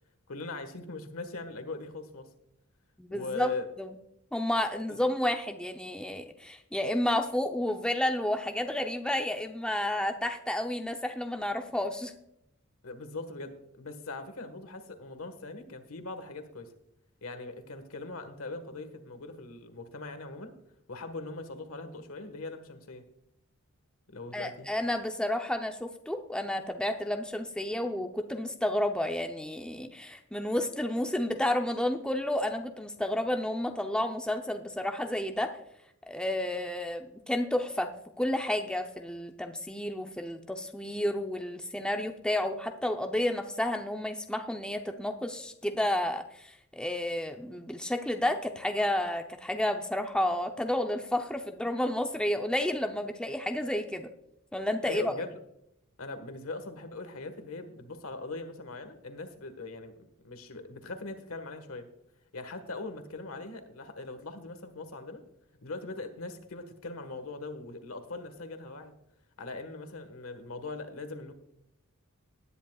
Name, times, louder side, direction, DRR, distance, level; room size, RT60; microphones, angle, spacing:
voice 1, 0.3-2.3 3.1-3.7 4.8-5.0 12.8-16.7 17.2-20.5 20.9-23.0 24.1-24.7 54.9-55.4 56.0-59.9 60.2-61.9 62.3-65.2 65.6-68.9 69.4-71.3, left 2 dB, 70° left, 8 dB, 1.5 m, -40 dB
voice 2, 3.0-3.9 4.3-12.1 24.3-35.5 36.1-37.9 38.2-54.1 54.5-55.1, left 1 dB, 5° left, 5 dB, 0.6 m, -31 dB
18.5 x 10.5 x 2.4 m, 0.79 s
head